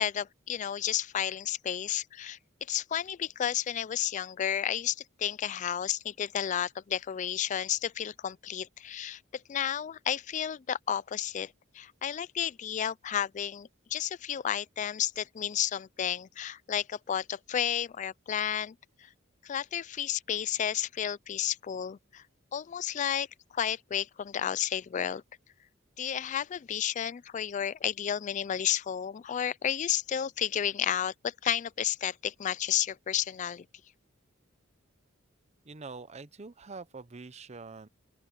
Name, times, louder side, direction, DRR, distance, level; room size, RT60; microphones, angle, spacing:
voice 1, 0.0-2.4 2.7-19.1 19.4-22.2 22.5-23.3 23.5-25.2 26.0-33.6, left 9 dB, 35° left, 0.3 m, -32 dB
voice 2, 35.7-37.9, right 4 dB, 35° right, 0.7 m, -45 dB
open air
head